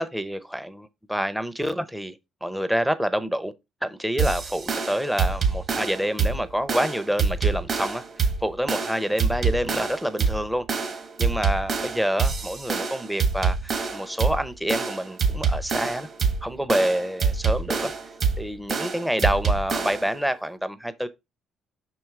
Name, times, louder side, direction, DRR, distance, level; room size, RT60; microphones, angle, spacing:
voice 1, 0.0-3.5 3.8-10.7 11.2-13.6 13.9-16.1 16.4-17.9 18.4-21.1, equal, 5° right, 0.6 m, -27 dB
sound 1, 4.2-20.2, right 5 dB, 45° right, 1.3 m, -26 dB
6.1 x 4.5 x 3.6 m
cardioid pair, 100°, 0 cm